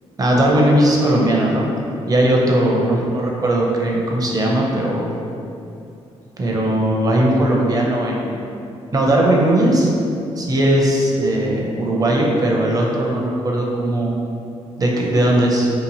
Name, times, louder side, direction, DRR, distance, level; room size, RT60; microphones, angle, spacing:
voice 1, 0.2-1.7 2.1-5.1 6.4-8.4 8.9-9.9 10.4-14.1 14.8-15.7, right 1 dB, 30° right, -2 dB, 0.5 m, -18 dB
2.8 x 2.5 x 2.6 m, 2.7 s
cardioid pair, 75°, 12 cm